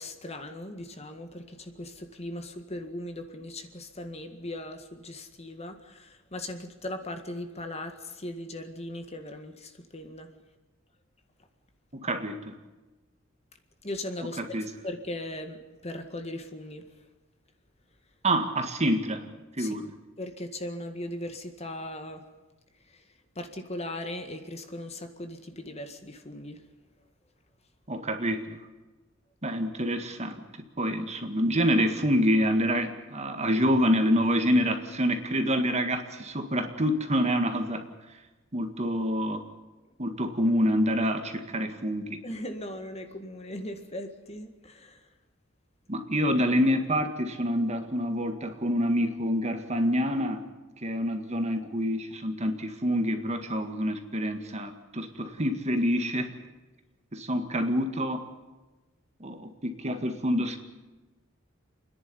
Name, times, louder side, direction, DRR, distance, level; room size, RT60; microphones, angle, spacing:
voice 1, 0.0-10.3 13.8-14.4 14.8-16.8 19.6-19.7 20.2-22.2 22.9-23.0 23.4-26.6 42.2-45.0, left 1 dB, 35° left, 7 dB, 1.8 m, -38 dB
voice 2, 11.9-12.6 14.4-14.7 18.2-19.3 19.6-19.9 27.9-28.6 29.4-30.5 30.8-37.9 38.5-39.4 40.0-42.2 45.9-50.4 50.8-56.3 57.1-58.2 59.2-60.6, equal, 35° right, 6 dB, 1.8 m, -27 dB
29.0 x 10.5 x 9.9 m, 1.2 s
head